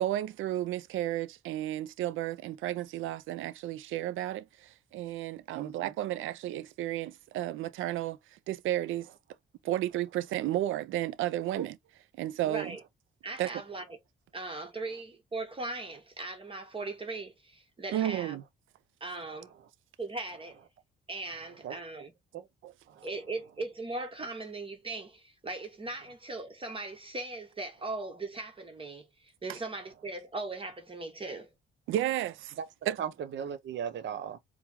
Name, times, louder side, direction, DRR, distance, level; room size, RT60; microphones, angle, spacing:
voice 1, 0.0-9.1 9.6-11.8 12.2-12.8 13.4-13.6 17.9-18.4 22.6-22.7 29.5-29.6 31.9-32.6 32.9-33.0, right 13 dB, 80° right, 0.5 m, -33 dB
voice 2, 5.5-5.9 11.6-11.7 21.6-22.0 22.3-22.4 22.9-23.1 32.6-32.7 33.0-34.4, right 8 dB, 65° right, 0.9 m, -37 dB
voice 3, 12.4-12.8 13.2-14.0 14.3-18.4 19.0-19.5 20.0-20.6 21.1-22.1 23.0-29.1 29.4-31.5, right 2 dB, 25° right, 1.0 m, -39 dB
4.6 x 2.1 x 3.4 m
cardioid pair, 90°, 20 cm